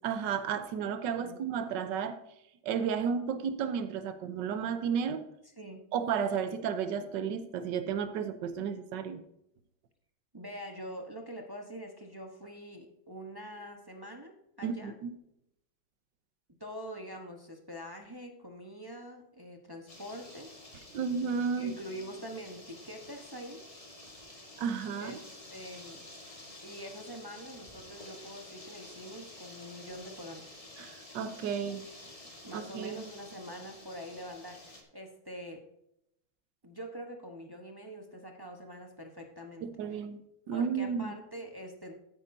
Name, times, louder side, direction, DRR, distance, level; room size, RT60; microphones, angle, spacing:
voice 1, 0.0-2.2 2.6-5.2 5.9-9.2 14.6-15.1 20.9-21.7 24.6-25.2 30.8-31.8 32.5-33.0 39.6-40.2 40.5-41.1, right 7 dB, 65° right, 9 dB, 1.5 m, -32 dB
voice 2, 10.3-14.9 16.6-20.5 21.6-23.6 25.0-25.2 25.5-26.0 26.6-30.5 32.4-35.6 36.6-40.0 40.5-41.9, equal, 15° right, 2 dB, 0.8 m, -44 dB
sound 1, 19.9-34.8, left 1 dB, 20° left, 1.5 m, -50 dB
12.5 x 9.9 x 2.7 m, 0.79 s
omnidirectional pair, 2.2 m